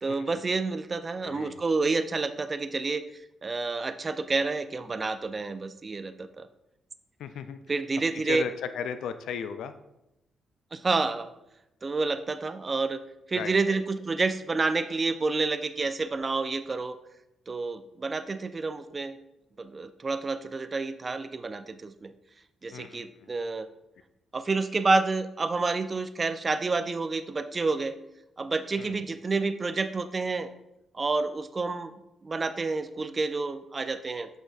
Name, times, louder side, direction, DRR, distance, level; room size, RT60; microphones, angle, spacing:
voice 1, 0.0-3.0 3.4-6.5 7.7-8.5 10.7-11.3 11.8-13.0 13.3-17.0 17.5-19.2 19.6-22.1 22.6-23.7 24.3-28.0 28.4-30.5 30.9-31.9 32.2-34.3, right 3 dB, 40° right, 12 dB, 0.5 m, -29 dB
voice 2, 1.2-1.6 7.2-7.6 8.1-9.7 13.3-13.8 22.7-23.3 28.8-29.0, left 7 dB, 70° left, 11 dB, 0.3 m, -36 dB
7.1 x 6.1 x 2.4 m, 0.90 s
hypercardioid pair, 40°, 0 cm